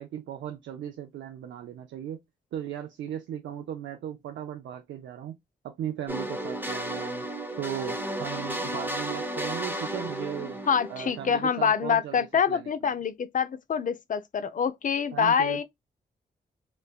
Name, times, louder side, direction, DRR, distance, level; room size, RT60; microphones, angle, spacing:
voice 1, 0.0-2.2 2.5-5.4 5.6-7.3 7.6-10.6 10.9-12.9 15.1-15.6, right 10 dB, 75° right, 0.5 m, -37 dB
sound 1, 6.1-11.8, right 1 dB, 10° right, 1.0 m, -34 dB
voice 2, 10.7-15.6, left 7 dB, 45° left, 0.5 m, -26 dB
3.1 x 2.1 x 2.3 m
supercardioid pair, 40°, 19 cm